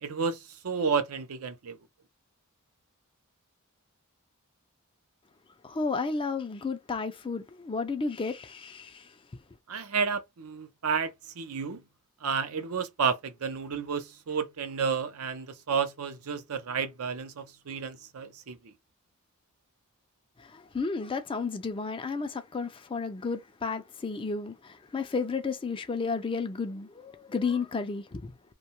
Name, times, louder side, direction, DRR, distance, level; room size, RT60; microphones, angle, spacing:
voice 1, 0.0-1.8 9.7-11.8 12.2-18.7, right 6 dB, 75° right, 0.5 m, -31 dB
voice 2, 5.6-9.1 20.4-28.4, left 4 dB, 25° left, 0.3 m, -32 dB
2.6 x 2.2 x 2.9 m
head